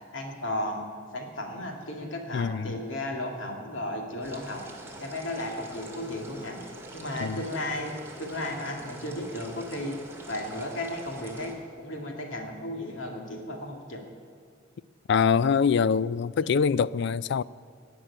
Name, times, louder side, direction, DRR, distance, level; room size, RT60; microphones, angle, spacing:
voice 1, 0.1-0.9 1.1-4.7 5.0-6.6 6.9-7.9 8.2-10.0 10.3-14.0 16.4-16.6, left 1 dB, 80° left, 2.5 m, -34 dB
voice 2, 2.3-2.8 7.2-7.4 15.1-17.4, left 6 dB, 60° left, 0.3 m, -24 dB
sound 1, 4.2-11.5, right 1 dB, 15° right, 2.1 m, -45 dB
18.5 x 6.2 x 9.8 m
head